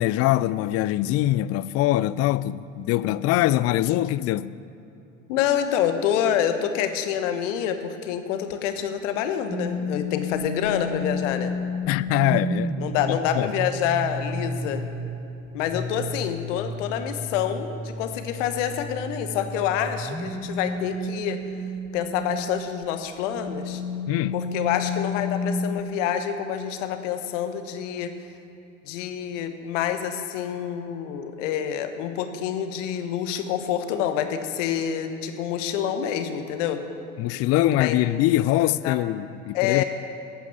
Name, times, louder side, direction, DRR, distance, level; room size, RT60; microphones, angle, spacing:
voice 1, 0.0-4.6 11.9-13.5 24.1-24.4 37.2-39.8, left 14 dB, 40° left, 0.4 m, -23 dB
voice 2, 5.3-11.5 12.8-14.8 15.5-21.4 21.9-23.8 24.3-28.1 28.8-36.8 37.8-38.0 38.8-38.9 39.5-39.8, left 9 dB, 65° left, 1.3 m, -27 dB
sound 1, 9.5-22.6 23.1-25.8, left 1 dB, ahead, 0.8 m, -31 dB
12.5 x 8.9 x 7.0 m
figure-of-eight pair, 65°, 39 cm